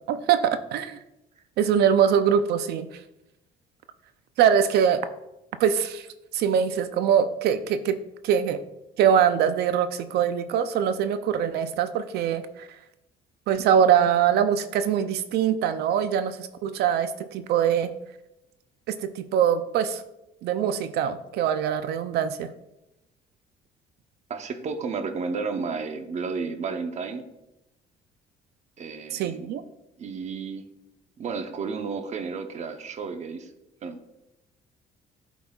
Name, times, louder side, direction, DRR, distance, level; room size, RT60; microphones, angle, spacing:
voice 1, 0.1-1.0 1.6-2.9 4.4-5.0 5.6-6.1 6.3-8.0 8.2-8.6 9.0-12.7 13.5-17.9 18.9-20.0 20.4-22.5 29.1-29.6, right 8 dB, 75° right, 11 dB, 0.5 m, -23 dB
voice 2, 24.3-27.2 28.8-29.5 30.0-30.6 31.2-33.5 33.8-34.0, right 5 dB, 45° right, 7 dB, 0.8 m, -32 dB
12.0 x 4.1 x 2.3 m, 0.91 s
cardioid pair, 110°, 17 cm